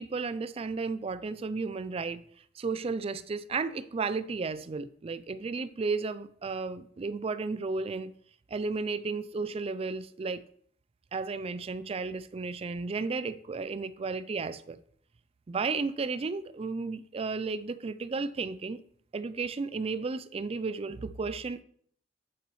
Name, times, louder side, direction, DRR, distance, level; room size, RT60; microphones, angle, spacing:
voice 1, 0.0-2.2 2.6-8.2 8.5-10.4 11.1-14.8 15.5-18.8 19.1-21.6, right 4 dB, 30° right, 0.4 m, -33 dB
8.5 x 8.0 x 3.1 m
head